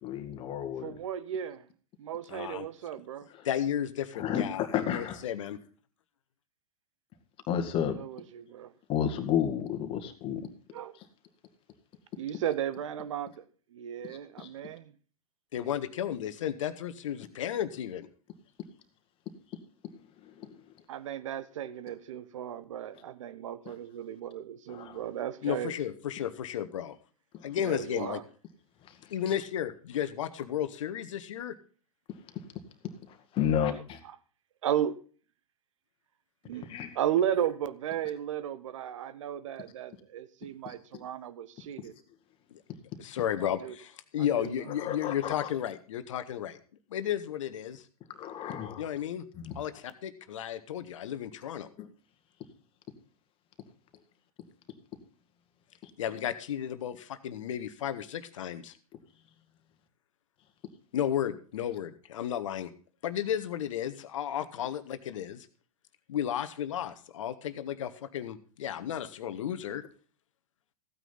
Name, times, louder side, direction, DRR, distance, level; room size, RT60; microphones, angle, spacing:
voice 1, 0.0-0.9 4.1-5.2 7.5-7.9 8.9-10.4 14.4-14.5 20.3-20.6 24.7-25.0 27.3-27.4 28.9-29.0 29.3-29.4 33.3-34.0 36.7-36.9 40.7-40.8 42.7-42.8 44.8-45.5 48.2-48.9 49.4-49.6 51.8-51.9 55.8-55.9, left 9 dB, 30° left, 1.9 m, -31 dB
voice 2, 0.8-1.7 2.0-3.3 7.9-8.7 10.7-11.0 12.2-13.4 13.7-14.9 20.9-25.8 27.6-28.2 33.7-33.8 34.6-35.0 36.4-41.9 43.4-43.7 44.2-44.7, right 10 dB, 55° right, 0.9 m, -35 dB
voice 3, 2.3-2.7 3.4-5.6 15.5-18.1 25.4-26.9 27.4-28.2 29.1-31.5 42.5-42.6 43.0-46.6 46.9-47.8 48.8-49.2 49.5-51.7 56.0-58.7 60.9-62.7 63.0-65.5 66.1-69.8, left 10 dB, 55° left, 1.2 m, -33 dB
15.0 x 9.2 x 4.0 m
figure-of-eight pair, 100°, 19 cm